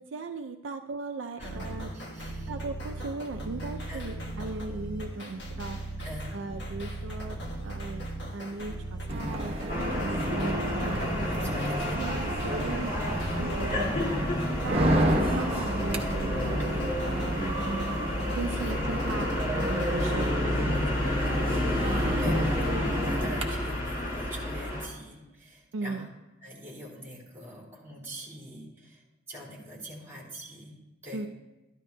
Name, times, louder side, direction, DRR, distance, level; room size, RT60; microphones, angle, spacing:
voice 1, 0.0-1.9 2.5-5.8 6.3-7.4 7.6-8.0 8.3-10.5 10.8-11.5 11.9-14.3 14.6-16.8 17.1-17.8 18.3-21.2 22.0-22.5 25.7-26.1 31.1-31.3, right 3 dB, 70° right, 6 dB, 0.4 m, -38 dB
sound 1, 1.4-20.4, right 1 dB, 60° left, 1.3 m, -38 dB
voice 2, 1.9-2.5 3.9-4.2 6.0-6.4 10.1-10.4 11.2-12.0 16.6-16.8 18.3-18.7 20.2-20.5 21.2-21.4 21.8-22.4 22.9-26.1 26.4-29.0 29.3-30.7 31.0-31.3, equal, 15° right, -5 dB, 3.3 m, -44 dB
sound 2, 9.1-23.4, right 1 dB, 30° right, 0.8 m, -31 dB
sound 3, 9.7-24.9, left 1 dB, 45° left, 1.7 m, -31 dB
13.0 x 11.5 x 2.2 m, 1.0 s
head